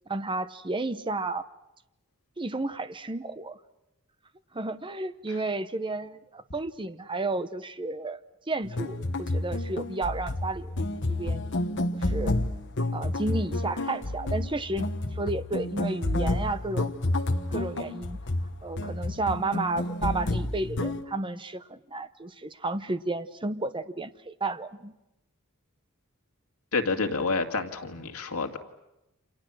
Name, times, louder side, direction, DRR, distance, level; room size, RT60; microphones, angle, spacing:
voice 1, 0.1-1.5 2.4-3.6 4.5-8.2 8.5-10.7 11.1-11.4 12.0-12.3 12.9-16.9 17.5-18.2 18.6-24.9, right 2 dB, 25° right, 12 dB, 0.9 m, -32 dB
sound 1, 8.6-21.0, left 2 dB, 55° left, 1.3 m, -30 dB
voice 2, 26.7-28.6, left 4 dB, 80° left, 5 dB, 2.3 m, -28 dB
29.0 x 27.0 x 6.3 m, 0.92 s
head